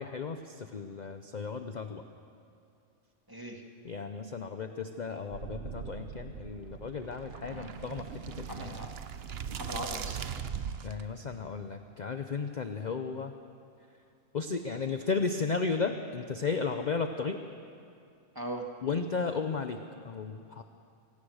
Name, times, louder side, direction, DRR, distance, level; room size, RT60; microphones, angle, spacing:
voice 1, 0.0-2.0 3.8-8.8 10.8-13.3 14.3-17.4 18.8-20.6, left 4 dB, 40° left, 7 dB, 0.8 m, -34 dB
voice 2, 3.3-3.6 7.5-7.8 8.5-8.9 9.5-10.4 18.4-18.7, right 1 dB, 15° right, 1 dB, 2.1 m, -40 dB
sound 1, 5.3-11.0, right 7 dB, 55° right, 0.9 m, -40 dB
24.5 x 18.0 x 6.5 m, 2.5 s
omnidirectional pair, 1.3 m